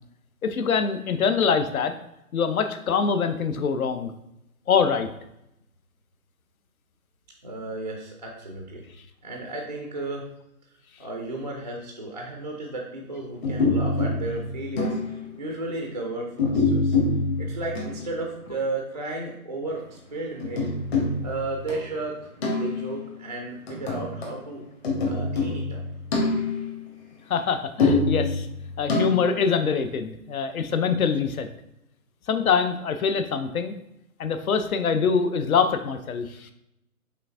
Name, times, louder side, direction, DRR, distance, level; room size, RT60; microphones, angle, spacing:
voice 1, 0.4-1.9 2.3-4.2 4.7-5.1 27.3-28.5 28.8-31.5 32.3-33.7 34.2-36.5, left 6 dB, 70° left, 9 dB, 0.6 m, -24 dB
voice 2, 7.4-10.3 11.0-15.0 15.4-17.0 17.4-20.7 21.2-24.6 25.0-25.8, right 2 dB, 30° right, 0 dB, 0.4 m, -34 dB
sound 1, 13.4-15.3 16.4-18.1 20.4-21.9 22.4-23.1 23.7-24.4 24.8-26.8 27.8-29.4, left 3 dB, 45° left, 1.3 m, -25 dB
5.7 x 3.4 x 2.5 m, 0.83 s
figure-of-eight pair, 135°, 44 cm